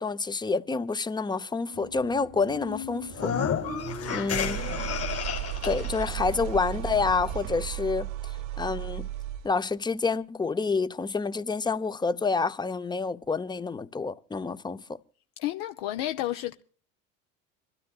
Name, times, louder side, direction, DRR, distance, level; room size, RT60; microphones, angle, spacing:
voice 1, 0.0-3.3 4.1-4.6 5.6-8.1 8.6-9.1 9.4-14.8, left 4 dB, 10° left, 0.7 m, -28 dB
sound 1, 1.6-7.5, left 5 dB, 90° left, 3.3 m, -43 dB
sound 2, 1.7-9.6, right 12 dB, 55° right, 1.0 m, -36 dB
sound 3, 3.1-6.1, left 7 dB, 40° left, 2.3 m, -31 dB
voice 2, 3.9-4.2 15.4-16.5, left 14 dB, 70° left, 0.8 m, -32 dB
26.5 x 13.0 x 2.4 m
hypercardioid pair, 75°, 38 cm